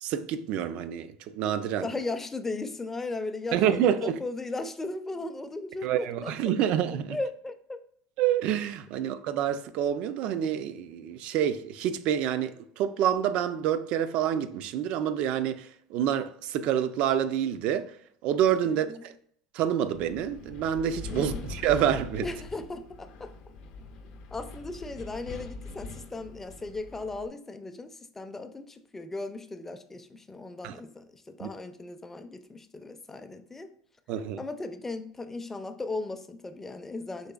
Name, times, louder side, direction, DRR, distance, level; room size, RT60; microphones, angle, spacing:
voice 1, 0.0-1.9 3.5-4.2 5.8-7.2 8.2-18.0 18.2-19.1 19.5-22.3 30.6-30.7 31.4-31.5 34.1-34.4, right 9 dB, 60° right, 0.3 m, -27 dB
voice 2, 1.8-6.3 7.1-7.8 8.9-9.0 18.6-19.0 21.1-21.5 22.2-23.3 24.3-33.7 34.4-37.3, left 2 dB, 15° left, 0.4 m, -37 dB
Wind, 19.9-27.3, left 3 dB, 65° left, 0.6 m, -42 dB
3.9 x 3.2 x 2.3 m
supercardioid pair, 95°, 2 cm